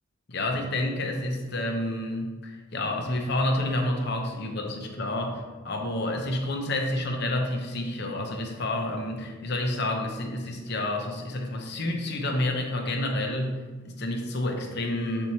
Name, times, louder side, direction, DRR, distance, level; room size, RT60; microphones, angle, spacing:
voice 1, 0.3-13.6 13.8-15.3, left 1 dB, 50° left, 2 dB, 0.8 m, -29 dB
7.4 x 4.5 x 2.8 m, 1.3 s
head